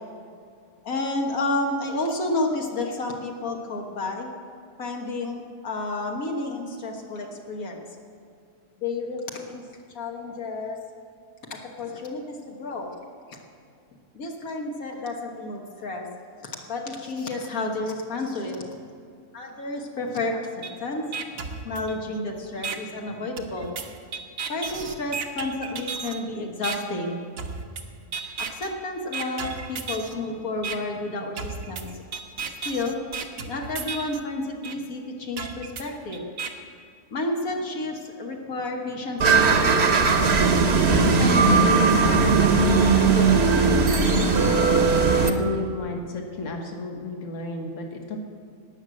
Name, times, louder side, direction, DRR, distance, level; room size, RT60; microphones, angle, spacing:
voice 1, 0.8-4.3 4.8-7.8 8.8-9.6 9.9-10.8 11.5-12.9 14.1-16.1 16.4-18.6 19.3-21.1 21.6-23.7 24.5-27.2 28.4-32.0 32.6-33.0 33.5-36.2 37.1-39.9 40.7-43.9, left 2 dB, 80° left, 0 dB, 1.7 m, -31 dB
sound 1, 20.6-20.7 21.1-22.2 22.6-22.8 23.4-26.2 26.6-26.8 27.4-27.8 28.1-28.7 29.1-30.1 30.6-30.8 31.4-34.2 34.6-34.7 35.4-36.5, right 5 dB, 75° right, 1.4 m, -33 dB
sound 2, 39.2-45.3, right 4 dB, 50° right, 1.2 m, -18 dB
voice 2, 45.2-48.2, left 2 dB, 60° left, 2 dB, 1.7 m, -32 dB
18.5 x 6.3 x 7.6 m, 2.3 s
omnidirectional pair, 1.4 m